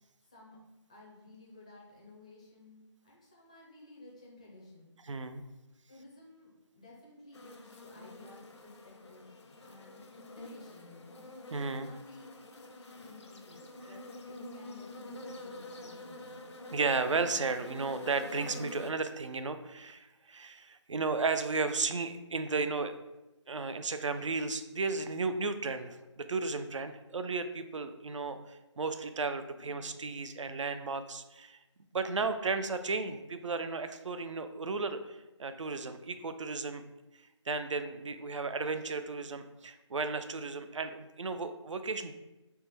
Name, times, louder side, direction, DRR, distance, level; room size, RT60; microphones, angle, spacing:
voice 1, 0.9-5.0 5.9-11.3 11.8-16.5, left 2 dB, 15° left, -3 dB, 0.4 m, -55 dB
voice 2, 5.1-5.4 11.5-11.9 16.7-22.9 23.5-31.6 31.9-36.8 37.5-42.1, right 4 dB, 80° right, 10 dB, 0.4 m, -34 dB
sound 1, 7.3-18.9, left 2 dB, 65° left, 0.6 m, -47 dB
3.5 x 2.2 x 4.4 m, 1.0 s
figure-of-eight pair, 165°, 16 cm